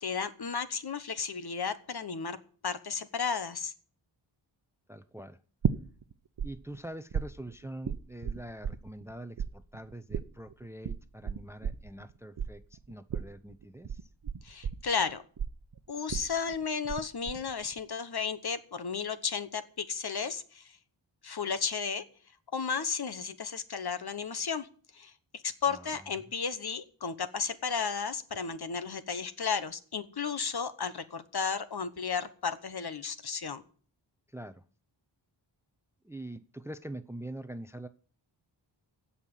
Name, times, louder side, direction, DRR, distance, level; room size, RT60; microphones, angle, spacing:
voice 1, 0.0-2.4 2.6-3.7 14.4-15.2 15.9-20.8 21.2-22.0 22.5-24.7 24.9-33.6, left 6 dB, 55° left, 12 dB, 1.2 m, -33 dB
voice 2, 4.9-5.4 6.4-14.1 25.7-26.1 34.3-34.6 36.0-37.9, right 1 dB, 5° right, 13 dB, 0.6 m, -44 dB
sound 1, 5.6-6.5 6.7-9.1 9.4-17.0 17.3-17.8, right 7 dB, 55° right, 0.9 m, -34 dB
16.0 x 5.7 x 9.9 m, 0.44 s
wide cardioid pair, 120°, 46 cm